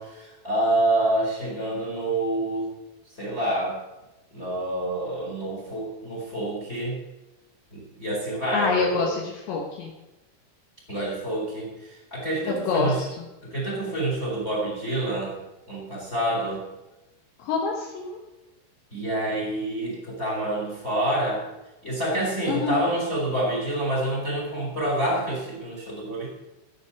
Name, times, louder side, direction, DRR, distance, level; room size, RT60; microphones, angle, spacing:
voice 1, 0.0-2.7 3.2-3.8 4.3-7.0 7.7-9.2 10.9-13.0 13.4-15.4 15.7-16.6 18.9-21.4 21.8-26.3, right 1 dB, 15° left, -2 dB, 3.3 m, -27 dB
voice 2, 8.5-9.9 12.7-12.9 17.4-18.2 22.5-22.8, left 4 dB, 70° left, 0 dB, 3.2 m, -26 dB
14.5 x 8.1 x 7.1 m, 1.0 s
omnidirectional pair, 5.9 m